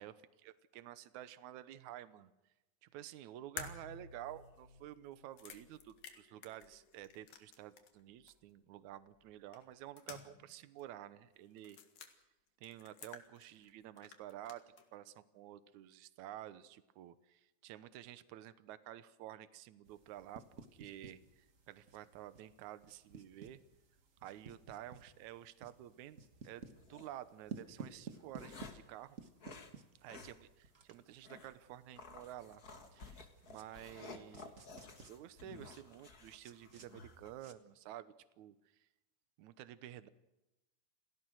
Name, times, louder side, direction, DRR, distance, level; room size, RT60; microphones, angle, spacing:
voice 1, 0.4-2.3 2.8-11.8 12.6-14.6 14.9-23.6 24.2-29.2 30.0-32.6 32.9-38.6 39.4-40.1, right 12 dB, 70° right, 13 dB, 2.2 m, -51 dB
sound 1, 3.6-8.0 8.3-8.4 9.5-10.5 10.8-10.9 11.6-12.1 12.6-13.7 14.0-14.9, left 6 dB, 80° left, 3.5 m, -52 dB
sound 2, 19.9-37.5, right 4 dB, 90° right, 0.7 m, -56 dB
sound 3, 26.8-27.1 27.8-28.9 29.4-29.7 30.1-30.4 30.7-30.8 31.2-31.5 32.0-37.3, left 4 dB, 35° left, 1.8 m, -54 dB
29.0 x 17.5 x 6.3 m, 0.99 s
omnidirectional pair, 3.9 m